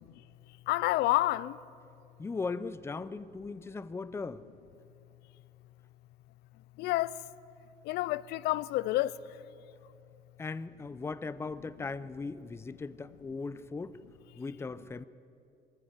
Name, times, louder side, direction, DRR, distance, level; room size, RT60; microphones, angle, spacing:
voice 1, 0.7-1.5 6.8-7.1 7.9-9.1, left 17 dB, 85° left, 0.5 m, -28 dB
voice 2, 2.2-4.4 10.4-14.0 14.4-15.0, left 4 dB, 15° left, 0.5 m, -38 dB
22.5 x 15.0 x 8.1 m
cardioid pair, 130°, 17 cm